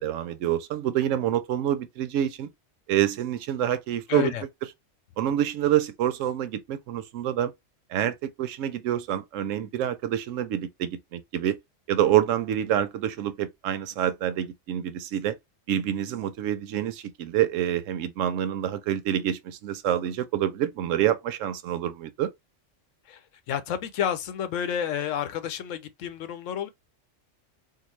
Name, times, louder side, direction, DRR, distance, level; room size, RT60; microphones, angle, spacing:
voice 1, 0.0-2.5 2.9-4.3 5.2-7.5 7.9-11.6 11.9-15.4 15.7-22.3, right 11 dB, 90° right, 0.9 m, -27 dB
voice 2, 4.1-4.4 23.1-23.2 23.5-26.7, left 9 dB, 90° left, 1.0 m, -30 dB
3.7 x 2.2 x 3.1 m
omnidirectional pair, 1.3 m